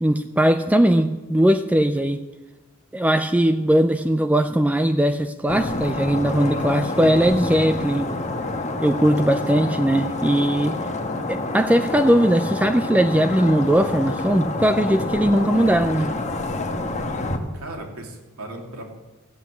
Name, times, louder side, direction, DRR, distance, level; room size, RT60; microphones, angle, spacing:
voice 1, 0.0-2.2 2.9-8.1 8.8-10.8 11.3-16.1, right 1 dB, 5° right, 8 dB, 0.4 m, -19 dB
sound 1, 5.5-17.4, left 2 dB, 35° left, 1.3 m, -28 dB
voice 2, 17.1-18.9, right 1 dB, 90° right, 0 dB, 3.2 m, -37 dB
15.0 x 8.2 x 8.2 m, 1.1 s
head